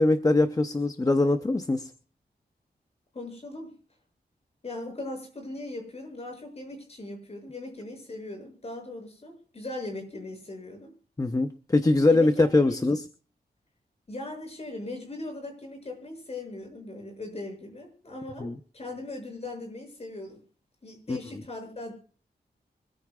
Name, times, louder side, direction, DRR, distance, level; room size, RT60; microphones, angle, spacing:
voice 1, 0.0-1.9 11.2-13.1 18.4-18.5 21.1-21.2, left 2 dB, 20° left, 9 dB, 0.7 m, -22 dB
voice 2, 3.1-3.7 4.6-10.9 12.1-12.8 14.1-20.4 20.8-21.9, left 2 dB, 35° left, 3 dB, 7.0 m, -39 dB
25.0 x 14.5 x 2.4 m, 0.39 s
wide cardioid pair, 160°, 17 cm